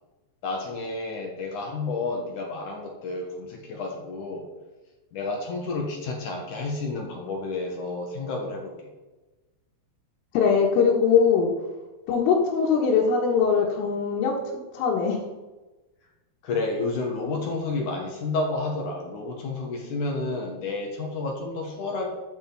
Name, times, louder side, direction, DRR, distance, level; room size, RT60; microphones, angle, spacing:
voice 1, 0.4-4.5 5.1-8.7 16.4-22.1, left 3 dB, 60° left, 1 dB, 2.2 m, -30 dB
voice 2, 10.3-11.5 12.1-14.3 14.7-15.2, left 6 dB, 85° left, -4 dB, 4.0 m, -21 dB
13.0 x 8.2 x 4.1 m, 1.1 s
omnidirectional pair, 5.6 m